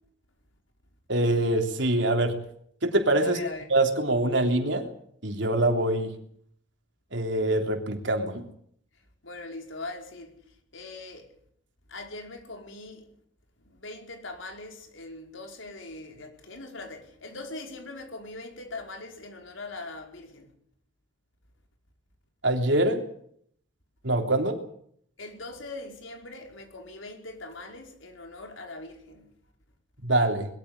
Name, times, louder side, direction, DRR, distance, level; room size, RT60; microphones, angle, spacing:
voice 1, 1.1-2.4 2.8-3.4 3.7-4.9 5.2-6.1 7.1-8.5 22.4-23.0 24.0-24.6 30.0-30.5, right 1 dB, 70° right, 3.4 m, -24 dB
voice 2, 3.2-3.7 9.2-10.3 10.7-11.3 11.9-13.1 13.7-20.5 25.2-29.3, left 2 dB, 85° left, 5.0 m, -41 dB
21.5 x 14.0 x 9.9 m
head